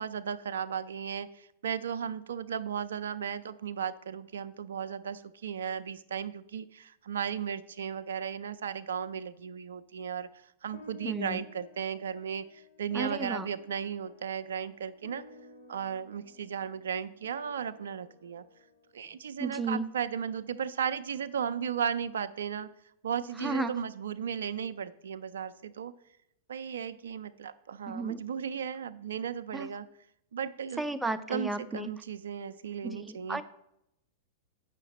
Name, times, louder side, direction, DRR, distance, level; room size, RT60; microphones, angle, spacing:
voice 1, 0.0-15.2 15.7-18.4 18.9-22.7 23.0-25.9 26.5-29.9 30.3-30.8 31.3-33.4, right 8 dB, 75° right, 13 dB, 0.4 m, -35 dB
sound 1, 10.7-19.4, left 3 dB, 70° left, 2.0 m, -54 dB
voice 2, 11.0-11.4 12.9-13.5 19.4-19.9 23.4-23.7 27.9-28.2 29.5-29.7 30.8-31.9 32.8-33.4, right 3 dB, 5° right, 9 dB, 0.6 m, -33 dB
8.2 x 5.8 x 4.1 m, 0.79 s
hypercardioid pair, 105°, 0 cm